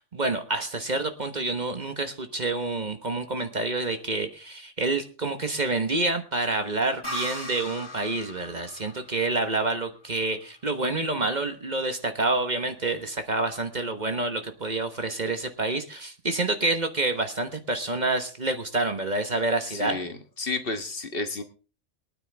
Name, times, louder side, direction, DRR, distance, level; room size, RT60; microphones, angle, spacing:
voice 1, 0.1-20.0, right 2 dB, 40° right, 7 dB, 1.3 m, -28 dB
sound 1, 7.0-10.6, equal, 20° left, 3.8 m, -39 dB
voice 2, 19.7-21.4, left 3 dB, 50° left, 7 dB, 1.6 m, -31 dB
22.5 x 9.6 x 3.5 m, 0.36 s
omnidirectional pair, 1.2 m